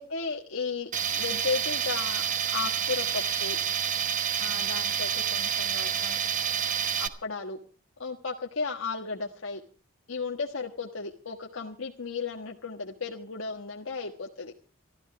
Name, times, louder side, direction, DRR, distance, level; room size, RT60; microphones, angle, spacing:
voice 1, 0.0-2.2 2.5-3.6 4.4-6.2 7.0-7.6 8.0-9.6 10.1-14.5, left 4 dB, 90° left, 2 dB, 1.4 m, -34 dB
Tools, 0.9-7.1, right 8 dB, 40° right, 1.2 m, -28 dB
25.5 x 13.5 x 3.3 m, 0.37 s
head